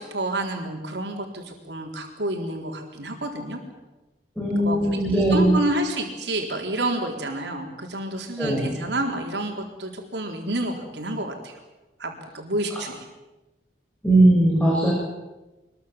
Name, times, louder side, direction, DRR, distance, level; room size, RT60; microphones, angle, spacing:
voice 1, 0.0-3.6 4.6-11.5 12.0-13.0, right 1 dB, 80° right, 2 dB, 4.0 m, -29 dB
voice 2, 4.4-5.6 8.4-8.8 14.0-14.9, right 1 dB, 10° left, -3 dB, 5.7 m, -19 dB
25.0 x 22.0 x 7.5 m, 1.1 s
head